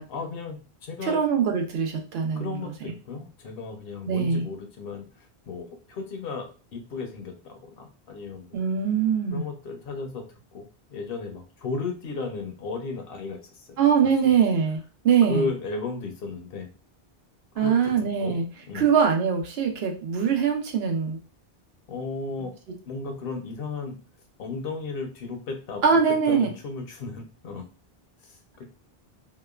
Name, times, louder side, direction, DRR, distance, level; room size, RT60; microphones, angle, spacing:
voice 1, 0.1-1.2 2.3-8.7 9.3-10.2 10.5-10.6 10.9-14.1 15.3-16.7 17.5-18.4 18.7-18.9 21.9-22.5 22.9-24.0 24.4-25.8 26.3-27.7 28.2-28.6, left 4 dB, 70° left, 4 dB, 0.8 m, -35 dB
voice 2, 1.0-2.5 4.1-4.4 8.5-9.4 13.8-14.8 15.0-15.5 17.6-18.4 18.7-21.2 25.8-26.5, right 7 dB, 80° right, 3 dB, 0.8 m, -22 dB
2.8 x 2.1 x 2.2 m, 0.34 s
omnidirectional pair, 1.0 m